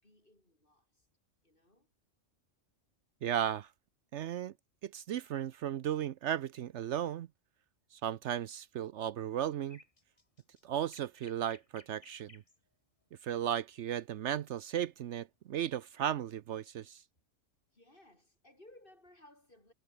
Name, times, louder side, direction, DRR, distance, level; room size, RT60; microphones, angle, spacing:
voice 1, 0.0-1.1 1.4-1.9 10.1-10.2 12.6-12.8 17.7-19.7, left 1 dB, 40° left, 6.4 m, -61 dB
voice 2, 3.2-3.7 4.1-4.5 4.8-7.3 7.9-9.8 10.6-12.4 13.2-17.0, right 10 dB, 70° right, 0.9 m, -35 dB
sound 1, 9.6-12.6 14.6-14.9, left 2 dB, 25° left, 2.4 m, -60 dB
omnidirectional pair, 1.3 m